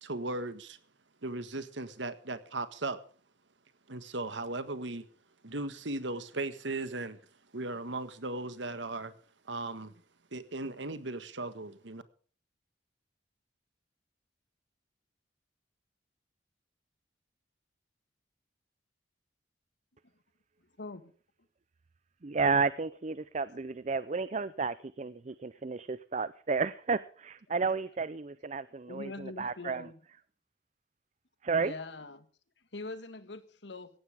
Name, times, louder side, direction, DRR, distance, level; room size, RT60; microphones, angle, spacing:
voice 1, 0.0-0.8 1.2-3.0 3.9-5.1 5.4-7.2 7.5-9.1 9.5-9.9 10.3-12.0, right 2 dB, 80° right, 1.7 m, -37 dB
voice 2, 20.8-21.1 28.9-30.0 31.6-32.3 32.7-33.9, left 2 dB, 70° left, 1.7 m, -43 dB
voice 3, 22.2-29.9 31.4-31.7, right 4 dB, 40° right, 0.6 m, -32 dB
18.0 x 15.5 x 3.6 m
head